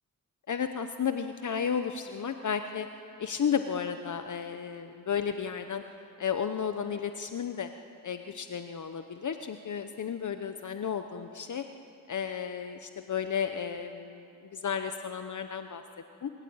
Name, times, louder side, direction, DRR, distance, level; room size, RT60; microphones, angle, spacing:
voice 1, 0.5-2.9 3.2-5.8 6.2-7.7 8.0-11.6 12.1-15.8 16.2-16.3, left 7 dB, 60° left, 8 dB, 0.9 m, -33 dB
23.5 x 14.0 x 8.8 m, 2.6 s
wide cardioid pair, 85°, 34 cm